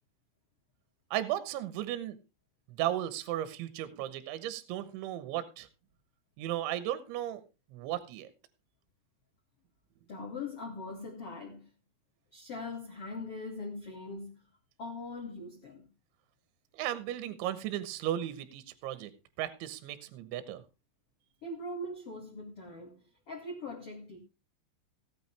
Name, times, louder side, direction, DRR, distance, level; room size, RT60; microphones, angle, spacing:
voice 1, 1.1-2.2 2.7-5.7 6.4-7.4 7.7-8.3 16.7-19.1 19.4-20.6, right 12 dB, 75° right, 3.3 m, -35 dB
voice 2, 10.1-11.7 12.3-14.4 14.8-15.9 21.4-24.2, left 2 dB, 45° left, 2.0 m, -41 dB
16.5 x 9.1 x 3.4 m
omnidirectional pair, 5.7 m